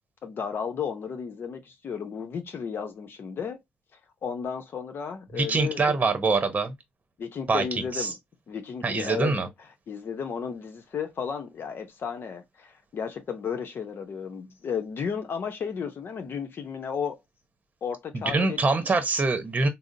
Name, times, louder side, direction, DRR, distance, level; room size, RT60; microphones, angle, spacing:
voice 1, 0.2-3.6 4.2-5.9 7.2-8.2 8.5-9.4 9.9-17.2 17.8-18.6, left 6 dB, 60° left, 0.7 m, -33 dB
voice 2, 5.3-6.7 7.5-8.1 8.8-9.5 18.1-19.7, right 3 dB, 35° right, 0.9 m, -24 dB
3.6 x 2.0 x 2.6 m
supercardioid pair, 65°, 4 cm